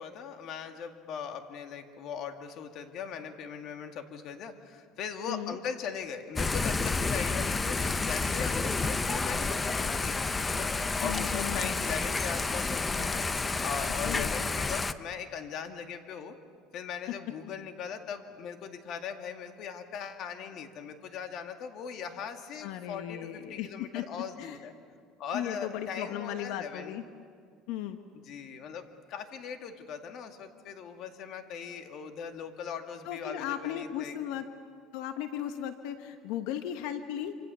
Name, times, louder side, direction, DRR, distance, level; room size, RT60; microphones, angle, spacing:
voice 1, 0.0-10.2 10.6-10.7 11.0-13.3 13.6-16.4 16.7-24.7 25.2-26.9 28.2-34.4, left 7 dB, 50° left, 6 dB, 2.1 m, -39 dB
Thunder / Rain, 6.4-14.9, left 3 dB, 15° left, 0.6 m, -30 dB
voice 2, 11.0-11.8 14.0-14.3 17.1-17.2 22.6-24.6 25.3-27.0 27.7-28.0 33.0-34.5 34.9-37.3, left 11 dB, 80° left, 8 dB, 1.3 m, -36 dB
27.0 x 26.5 x 6.9 m, 2.1 s
cardioid pair, 140°, 0 cm